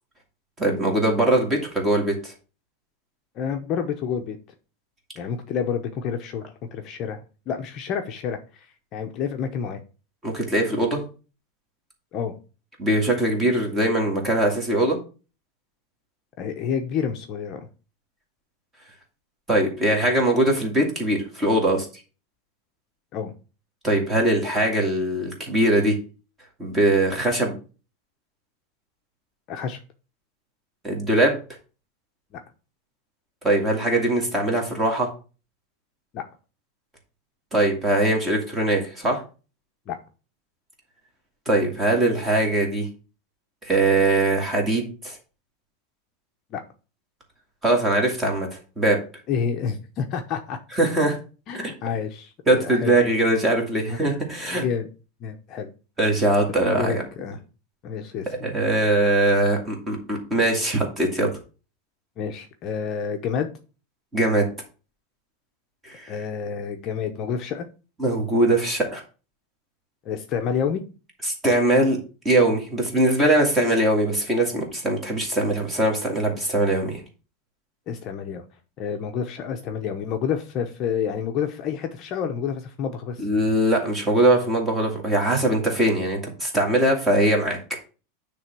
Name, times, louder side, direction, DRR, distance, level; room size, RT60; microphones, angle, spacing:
voice 1, 0.6-2.3 10.2-11.0 12.8-15.0 19.5-21.9 23.8-26.0 26.6-27.5 30.8-31.4 33.4-35.1 37.5-39.2 41.5-42.9 43.6-45.2 47.6-49.0 50.7-51.2 51.6-51.7 52.5-54.6 56.0-57.0 58.4-61.3 64.1-64.4 65.8-66.1 68.0-69.0 71.2-72.0 72.2-77.0 83.2-87.6, right 1 dB, 10° right, 1 dB, 2.1 m, -21 dB
voice 2, 3.3-4.4 5.2-6.4 6.7-7.2 7.5-8.7 8.9-9.8 12.1-12.4 16.4-17.7 23.1-23.3 29.5-29.8 32.3-32.4 36.1-36.3 39.9-40.0 46.5-46.6 49.3-50.6 51.5-52.9 53.9-54.0 54.5-54.9 55.2-55.7 56.8-57.4 57.8-58.3 62.2-63.5 66.1-67.7 70.0-70.8 77.9-78.4 78.8-83.3, left 7 dB, 30° left, 4 dB, 0.8 m, -29 dB
9.6 x 3.4 x 6.0 m, 0.35 s
supercardioid pair, 165°, 0 cm